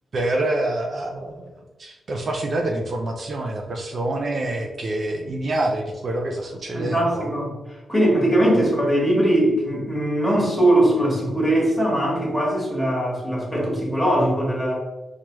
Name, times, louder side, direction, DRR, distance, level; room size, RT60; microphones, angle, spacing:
voice 1, 0.1-1.5 1.8-7.3 8.5-8.7, right 2 dB, 50° right, 2 dB, 0.4 m, -26 dB
voice 2, 6.7-14.7, right 1 dB, 5° left, -4 dB, 1.3 m, -21 dB
4.5 x 2.3 x 3.0 m, 1.1 s
wide cardioid pair, 115°, 0 cm